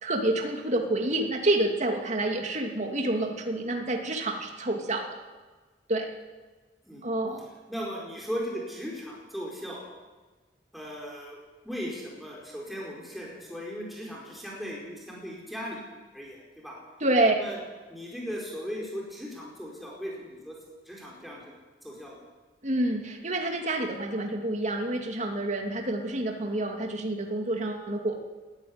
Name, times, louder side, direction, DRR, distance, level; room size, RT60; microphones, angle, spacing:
voice 1, 0.0-5.1 5.9-6.1 7.0-7.5 17.0-17.3 22.6-28.2, right 2 dB, 40° right, 3 dB, 2.6 m, -28 dB
voice 2, 7.7-9.8 10.7-11.4 11.6-15.8 16.1-16.8 17.3-17.6 17.9-20.6 20.8-21.5 21.8-22.3, equal, ahead, -3 dB, 4.7 m, -37 dB
20.5 x 13.5 x 9.6 m, 1.3 s
head